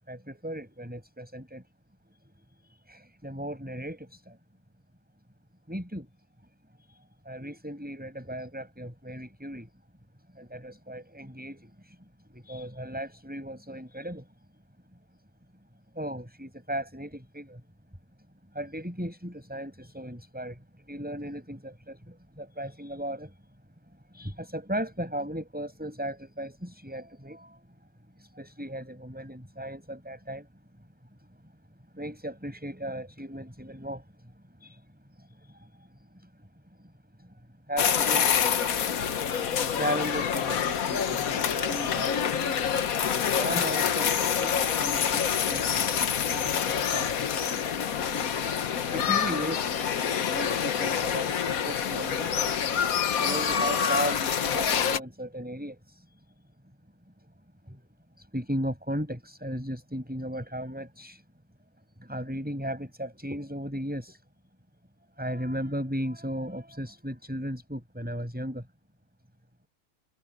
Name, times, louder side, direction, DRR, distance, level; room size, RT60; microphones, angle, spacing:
voice 1, 0.1-1.6 2.9-4.4 5.7-6.1 7.3-9.7 10.4-12.0 12.3-14.2 16.0-17.6 18.5-20.6 20.9-23.3 24.1-27.6 28.2-30.5 31.9-34.0 34.6-34.8 35.4-35.5 37.7-38.8 39.3-42.5 43.3-46.0 46.3-47.4 48.9-49.8 50.3-52.3 53.2-56.0 57.7-57.8 58.3-61.2 62.0-64.2 65.2-68.6, equal, 5° right, 7.3 m, -36 dB
sound 1, 37.8-55.0, left 8 dB, 75° left, 1.5 m, -27 dB
omnidirectional pair, 1.5 m